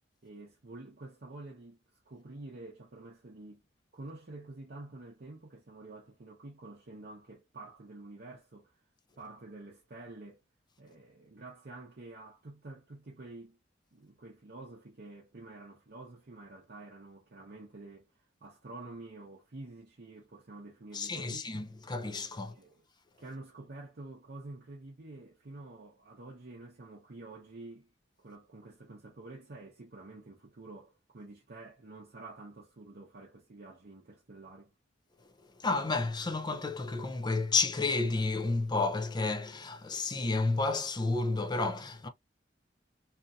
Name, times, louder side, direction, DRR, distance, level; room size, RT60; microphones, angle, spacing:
voice 1, 0.2-1.8 2.1-3.6 3.9-8.7 9.2-10.4 10.8-13.6 13.9-18.1 18.4-21.5 22.4-22.8 23.2-27.9 28.2-34.7, right 2 dB, 60° right, 0.7 m, -48 dB
voice 2, 20.9-22.5 35.6-42.1, left 3 dB, 25° left, 0.5 m, -31 dB
2.8 x 2.6 x 2.4 m
head